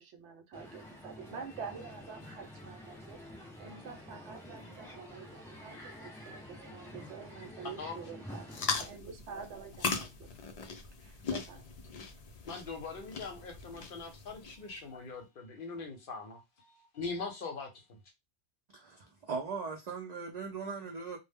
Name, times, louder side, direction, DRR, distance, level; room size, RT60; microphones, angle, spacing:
voice 1, 0.0-10.6 11.0-11.7, right 6 dB, 75° right, 0.9 m, -47 dB
Crowd, 0.5-8.8, left 1 dB, ahead, 0.9 m, -49 dB
voice 2, 7.6-8.0 12.5-17.7, left 4 dB, 55° left, 0.7 m, -42 dB
sound 1, 8.5-14.8, left 5 dB, 75° left, 0.3 m, -39 dB
voice 3, 18.7-21.2, right 5 dB, 60° right, 0.4 m, -39 dB
2.1 x 2.0 x 3.4 m
omnidirectional pair, 1.2 m